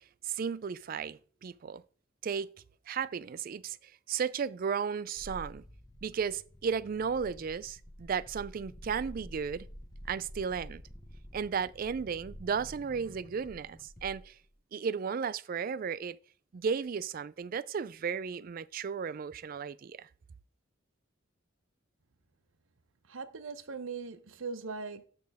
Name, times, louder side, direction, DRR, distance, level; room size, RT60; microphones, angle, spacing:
voice 1, 0.2-1.8 2.2-2.5 2.9-5.6 6.0-9.7 10.1-10.8 11.3-14.3 14.7-16.2 16.5-20.1, right 6 dB, 45° right, 0.3 m, -34 dB
sound 1, 5.2-14.5, equal, 15° left, 0.7 m, -49 dB
voice 2, 23.1-25.0, right 4 dB, 75° right, 0.7 m, -40 dB
12.5 x 4.5 x 3.5 m
head